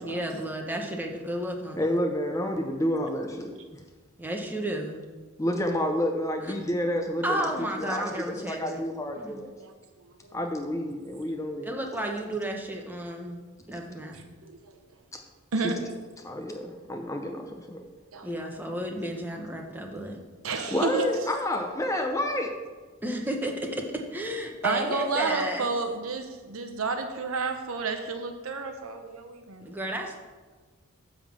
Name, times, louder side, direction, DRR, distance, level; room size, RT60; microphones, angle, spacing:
voice 1, 0.0-2.0 4.2-5.0 6.4-6.5 7.2-8.9 9.2-9.4 11.6-13.4 13.7-14.3 18.2-20.2 23.0-25.7 29.6-30.2, right 1 dB, 10° right, 2 dB, 1.0 m, -32 dB
voice 2, 1.8-3.6 5.4-8.1 8.5-9.4 10.3-11.7 16.2-17.8 20.7-22.5, left 1 dB, 15° left, 3 dB, 0.6 m, -29 dB
voice 3, 14.1-14.6 15.5-15.8 18.1-18.3 20.4-21.1 24.6-29.7, right 3 dB, 75° right, 5 dB, 0.8 m, -30 dB
9.9 x 3.7 x 7.2 m, 1.4 s
head